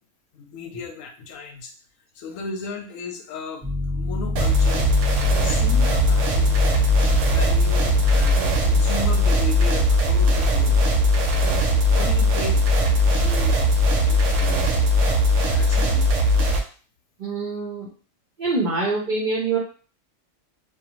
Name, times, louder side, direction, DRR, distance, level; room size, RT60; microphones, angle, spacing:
voice 1, 0.3-1.7 2.1-4.9 5.4-6.8 7.2-10.8 11.4-14.7 15.4-16.1, left 4 dB, 80° left, 3 dB, 1.0 m, -36 dB
Piano, 3.6-15.8, left 1 dB, 15° right, 0.8 m, -28 dB
sound 1, 4.4-16.6, equal, 75° right, 0.9 m, -19 dB
voice 2, 17.2-17.9 18.4-19.6, right 3 dB, 45° right, -2 dB, 0.7 m, -25 dB
2.5 x 2.4 x 2.9 m, 0.40 s
omnidirectional pair, 1.4 m